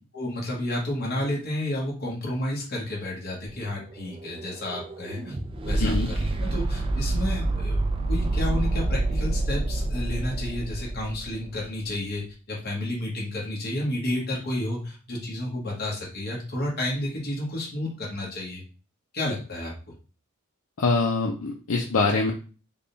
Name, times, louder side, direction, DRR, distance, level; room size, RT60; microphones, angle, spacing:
voice 1, 0.1-5.4 5.6-7.8 8.1-18.6 19.1-19.7, left 1 dB, 50° left, -3 dB, 1.1 m, -31 dB
sound 1, 3.5-11.6, right 2 dB, 25° right, 0.4 m, -27 dB
voice 2, 20.8-22.3, left 3 dB, 75° left, 0 dB, 0.5 m, -24 dB
3.5 x 2.3 x 3.9 m, 0.36 s
head